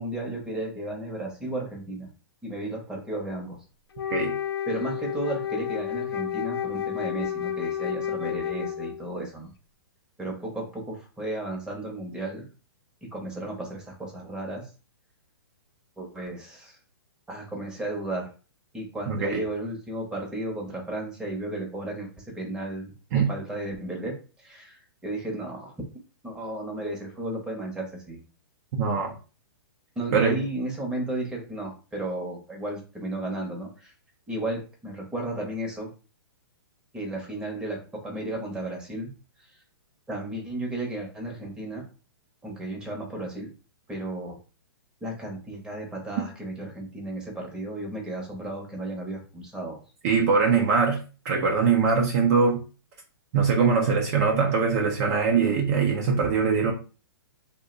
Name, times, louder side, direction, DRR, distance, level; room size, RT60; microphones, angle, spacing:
voice 1, 0.0-2.1 2.4-3.6 4.7-9.5 10.2-12.5 13.1-14.7 16.0-16.8 17.3-18.3 18.7-22.9 23.3-25.7 26.2-28.2 30.0-33.9 34.3-35.9 36.9-39.1 40.1-41.8 42.4-43.5 43.9-44.4 45.0-49.8, right 1 dB, 5° right, 0.8 m, -34 dB
Wind instrument woodwind instrument, 3.9-9.1, left 10 dB, 70° left, 0.6 m, -31 dB
voice 2, 19.1-19.4 23.1-23.3 28.8-29.1 30.1-30.4 50.0-52.6 53.3-56.7, right 5 dB, 40° right, 0.6 m, -22 dB
2.5 x 2.1 x 3.8 m
hypercardioid pair, 145°, 13 cm